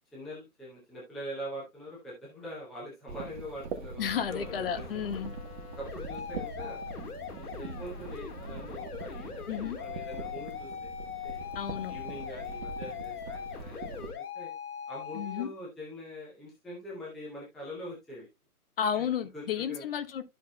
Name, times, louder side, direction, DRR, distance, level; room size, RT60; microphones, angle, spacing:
voice 1, 0.1-4.8 5.8-6.8 7.3-10.9 11.2-11.5 11.9-14.5 14.9-18.3 18.9-19.1 19.3-19.8, equal, ahead, 0.6 m, -43 dB
sound 1, 3.1-14.1, right 3 dB, 35° right, 1.3 m, -42 dB
voice 2, 4.0-5.3 9.5-9.8 11.5-12.0 15.1-15.5 18.8-20.2, left 8 dB, 40° left, 1.0 m, -32 dB
sound 2, 4.1-15.4, left 8 dB, 75° left, 1.8 m, -41 dB
12.5 x 5.9 x 2.2 m
hypercardioid pair, 145°, 46 cm